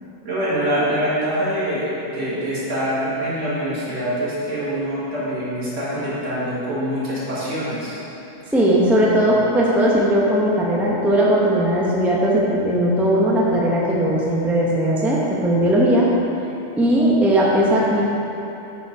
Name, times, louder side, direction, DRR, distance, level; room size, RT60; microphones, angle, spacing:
voice 1, 0.2-8.0 9.3-9.4, equal, 65° right, -9 dB, 2.4 m, -24 dB
voice 2, 8.5-16.1 16.8-18.0, right 1 dB, ahead, -5 dB, 0.7 m, -18 dB
8.2 x 5.3 x 4.7 m, 3.0 s
omnidirectional pair, 1.4 m